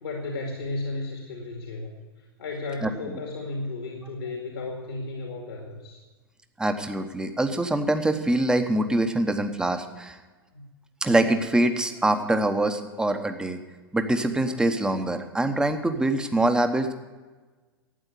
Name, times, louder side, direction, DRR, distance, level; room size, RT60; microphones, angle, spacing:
voice 1, 0.0-1.9 2.4-6.0 10.5-10.6, left 2 dB, 75° left, 1 dB, 2.1 m, -34 dB
voice 2, 2.8-3.2 6.6-10.2 11.0-13.6 13.9-16.9, right 1 dB, 5° right, 7 dB, 1.0 m, -24 dB
12.5 x 8.9 x 8.3 m, 1.3 s
figure-of-eight pair, 100°, 13 cm